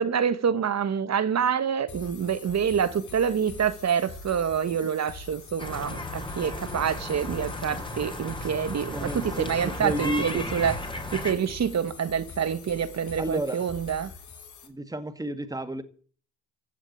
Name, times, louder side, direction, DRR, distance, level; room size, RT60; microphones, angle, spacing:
voice 1, 0.0-10.8 11.1-14.1, right 7 dB, 35° right, 1.6 m, -27 dB
sound 1, 1.9-14.7, left 4 dB, 40° left, 3.9 m, -44 dB
sound 2, 5.6-11.3, left 1 dB, 10° left, 3.6 m, -35 dB
voice 2, 8.9-10.5 13.2-13.6 14.6-15.8, right 1 dB, 10° right, 2.0 m, -31 dB
16.0 x 7.5 x 8.8 m
supercardioid pair, 85°, 43 cm